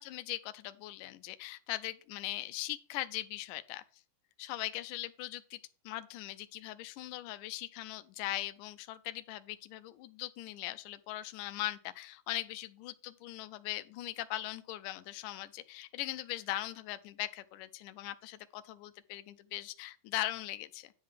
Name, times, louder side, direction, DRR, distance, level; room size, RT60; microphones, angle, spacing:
voice 1, 0.0-3.8 4.4-5.6 5.9-20.9, left 15 dB, 90° left, 2.2 m, -40 dB
10.5 x 3.7 x 6.4 m
omnidirectional pair, 3.7 m